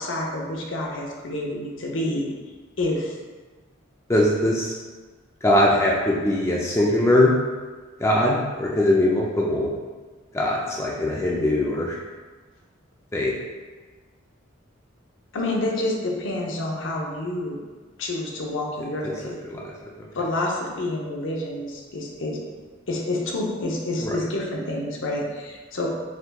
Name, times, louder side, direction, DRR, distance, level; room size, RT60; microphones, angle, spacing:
voice 1, 0.0-2.3 2.8-3.2 15.3-17.6 18.0-19.4 20.1-22.4 22.9-25.9, left 1 dB, 70° left, -1 dB, 0.7 m, -28 dB
voice 2, 4.1-4.7 5.4-7.3 8.0-9.7 10.3-12.0 13.1-13.3 19.0-19.1 19.5-19.6 24.0-24.1, left 1 dB, 15° left, -4 dB, 0.3 m, -21 dB
4.3 x 4.0 x 2.3 m, 1.4 s
head